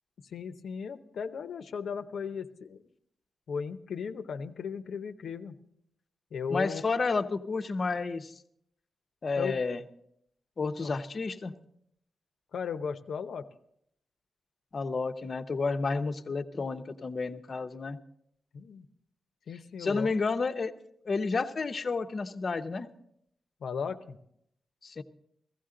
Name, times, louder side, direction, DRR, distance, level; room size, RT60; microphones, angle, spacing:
voice 1, 0.2-2.9 3.5-5.6 6.3-6.8 9.4-9.5 10.8-10.9 12.5-13.5 18.5-18.9 19.5-20.2 23.6-24.2, left 6 dB, 80° left, 9 dB, 0.7 m, -36 dB
voice 2, 6.5-8.4 9.2-9.8 10.6-11.5 14.7-18.0 19.8-20.7 21.0-22.9 24.8-25.0, left 4 dB, 45° left, 9 dB, 0.7 m, -31 dB
15.5 x 15.0 x 3.8 m, 0.73 s
wide cardioid pair, 105°, 0 cm